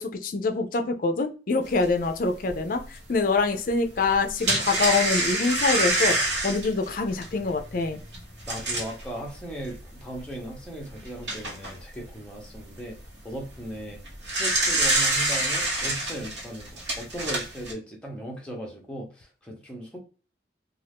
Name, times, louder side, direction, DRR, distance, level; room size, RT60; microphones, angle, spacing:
voice 1, 0.0-2.8 3.1-6.2 6.4-8.0, left 3 dB, 50° left, 6 dB, 0.4 m, -25 dB
sound 1, 1.8-1.9 2.5-2.6 4.0-9.0 9.7-9.8 10.1-10.2 10.9-11.7 13.9-17.7, right 2 dB, 75° right, 1.1 m, -26 dB
voice 2, 8.5-13.0 13.2-14.0 14.3-20.0, right 1 dB, 5° left, -1 dB, 0.8 m, -37 dB
2.5 x 2.4 x 3.4 m, 0.36 s
head